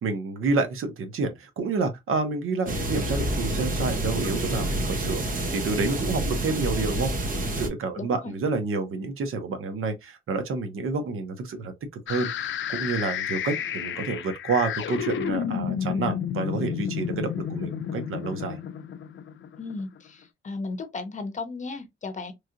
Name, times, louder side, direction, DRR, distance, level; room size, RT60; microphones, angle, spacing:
voice 1, 0.0-7.1 7.6-11.7 12.1-18.6, right 4 dB, 85° right, 0.8 m, -29 dB
sound 1, 2.7-7.7, right 1 dB, 40° right, 1.0 m, -28 dB
voice 2, 8.0-8.4 19.6-22.3, left 3 dB, 35° left, 0.7 m, -35 dB
sound 2, 12.1-20.0, left 8 dB, 70° left, 0.4 m, -31 dB
3.1 x 2.7 x 2.5 m
wide cardioid pair, 110°, 21 cm